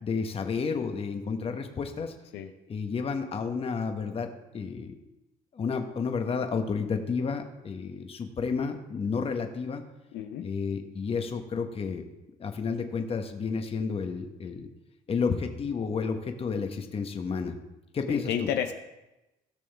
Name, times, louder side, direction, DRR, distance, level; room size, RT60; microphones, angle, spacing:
voice 1, 0.0-2.1 2.7-5.0 5.5-9.8 10.4-12.1 12.4-14.7 15.1-17.5 17.9-18.5, left 5 dB, 35° left, 6 dB, 1.1 m, -31 dB
voice 2, 10.1-10.4 18.1-18.7, left 9 dB, 80° left, 6 dB, 0.8 m, -30 dB
16.5 x 6.2 x 3.4 m, 0.98 s
cardioid pair, 110°, 17 cm